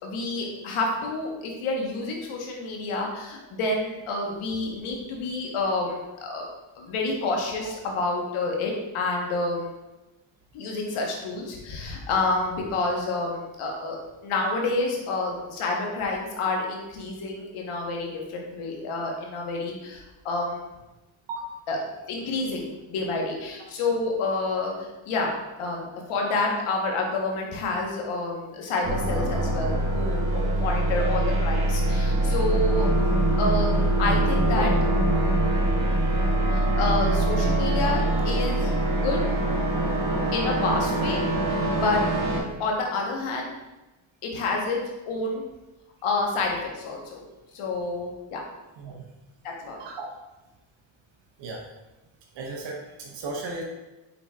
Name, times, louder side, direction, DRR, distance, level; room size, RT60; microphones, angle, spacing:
voice 1, 0.0-6.5 6.7-9.7 10.5-14.0 14.2-20.6 21.7-21.8 22.1-25.3 25.6-32.9 33.4-34.7 36.5-39.3 40.3-41.2 41.5-42.0 42.6-43.5 44.2-45.4 46.0-47.2 47.5-48.4 49.4-49.8, left 3 dB, 80° left, 0 dB, 1.1 m, -29 dB
sound 1, 28.8-42.4, right 1 dB, 40° right, 1.5 m, -23 dB
voice 2, 52.3-53.6, right 3 dB, 60° right, -1 dB, 0.9 m, -35 dB
5.2 x 4.0 x 2.3 m, 1.0 s
supercardioid pair, 70°, 49 cm